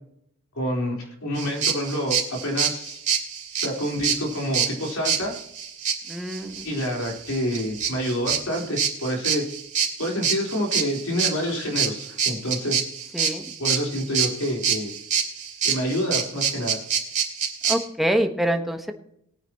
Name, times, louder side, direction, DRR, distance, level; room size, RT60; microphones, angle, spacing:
voice 1, 0.6-3.0 3.6-5.3 6.6-9.4 10.0-12.8 13.6-14.9 15.6-16.8, equal, 85° left, 0 dB, 4.0 m, -27 dB
sound 1, 1.4-17.8, right 7 dB, 35° right, 2.6 m, -26 dB
voice 2, 6.1-6.6 13.1-13.5 17.7-18.9, equal, ahead, 4 dB, 1.2 m, -25 dB
21.0 x 9.2 x 3.0 m, 0.74 s
head